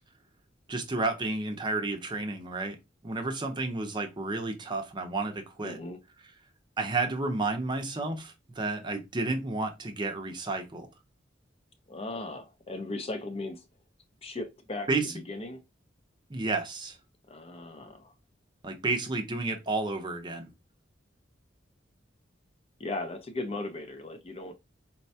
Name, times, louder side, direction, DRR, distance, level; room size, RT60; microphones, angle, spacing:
voice 1, 0.7-2.8 3.0-5.8 6.8-10.9 14.9-15.1 16.3-17.0 18.6-20.5, right 3 dB, 25° right, 0.6 m, -31 dB
voice 2, 5.6-6.0 11.9-13.7 14.2-15.6 17.3-18.1 22.8-24.5, left 2 dB, 30° left, 0.5 m, -37 dB
4.0 x 2.2 x 2.6 m
head